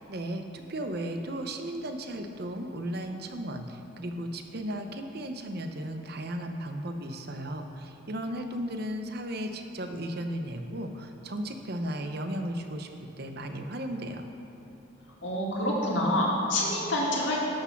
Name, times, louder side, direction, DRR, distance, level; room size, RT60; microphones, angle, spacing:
voice 1, 0.1-12.9 13.2-14.2, right 1 dB, 50° right, 6 dB, 0.7 m, -35 dB
voice 2, 15.2-17.4, left 1 dB, 65° left, -4 dB, 2.1 m, -27 dB
11.5 x 6.1 x 5.8 m, 2.9 s
head